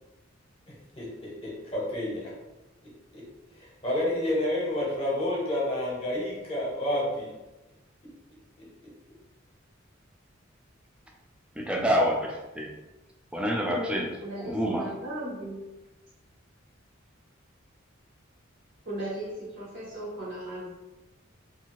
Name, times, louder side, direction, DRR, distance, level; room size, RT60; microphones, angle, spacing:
voice 1, 0.7-2.3 3.1-3.2 3.5-7.3, left 1 dB, 30° left, -4 dB, 0.9 m, -30 dB
voice 2, 11.6-12.7 13.3-14.1 14.4-14.9, equal, 5° right, -1 dB, 0.3 m, -27 dB
voice 3, 14.2-15.7 18.8-20.7, right 1 dB, 60° right, -7 dB, 0.9 m, -36 dB
2.6 x 2.4 x 3.0 m, 1.1 s
head